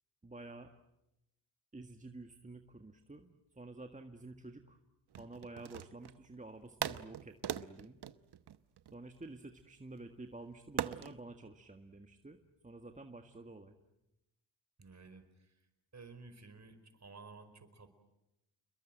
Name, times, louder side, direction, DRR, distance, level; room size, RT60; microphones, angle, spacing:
voice 1, 0.2-0.7 1.7-4.8 5.2-8.0 8.9-13.8, right 2 dB, 15° right, 5 dB, 1.8 m, -50 dB
sound 1, 5.1-6.3 6.8-9.3 10.8-11.2, right 10 dB, 60° right, 1.0 m, -40 dB
voice 2, 14.8-15.5 15.9-17.9, right 4 dB, 40° right, 10 dB, 4.8 m, -54 dB
29.5 x 21.5 x 9.1 m, 0.89 s
cardioid pair, 70°, 44 cm